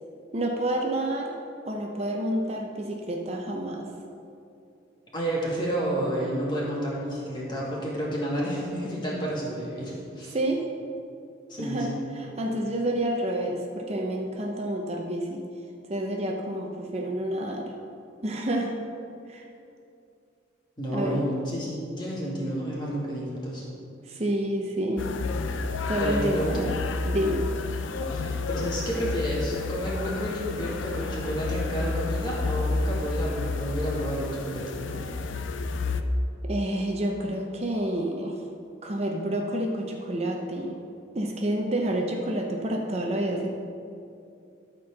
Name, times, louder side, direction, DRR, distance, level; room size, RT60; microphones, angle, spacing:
voice 1, 0.3-1.4 1.7-3.9 10.3-10.7 11.6-15.4 15.9-17.7 18.2-18.8 19.3-19.5 20.9-21.2 24.0-25.1 25.9-26.8 27.0-27.5 28.0-28.1 36.4-38.4 38.8-40.8 41.1-43.5, right 1 dB, 35° right, 1 dB, 0.7 m, -29 dB
voice 2, 5.1-10.4 11.5-12.0 20.8-23.7 26.0-26.6 28.1-34.7, equal, 25° left, -5 dB, 2.2 m, -30 dB
sound 1, 25.0-36.0, left 3 dB, 85° left, 0.5 m, -30 dB
13.0 x 4.5 x 6.4 m, 2.5 s
head